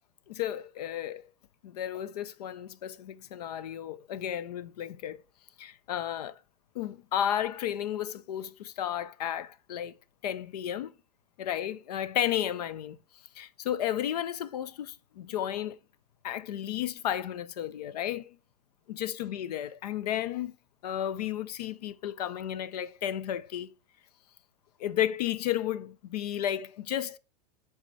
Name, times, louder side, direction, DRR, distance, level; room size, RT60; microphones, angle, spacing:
voice 1, 0.3-1.3 1.6-5.2 5.6-6.4 6.7-9.9 10.2-10.9 11.4-13.0 13.3-15.8 16.2-18.4 18.9-20.5 20.8-23.7 24.8-27.2, left 11 dB, 80° left, 0.6 m, -33 dB
7.2 x 3.7 x 4.0 m
hypercardioid pair, 105°, 20 cm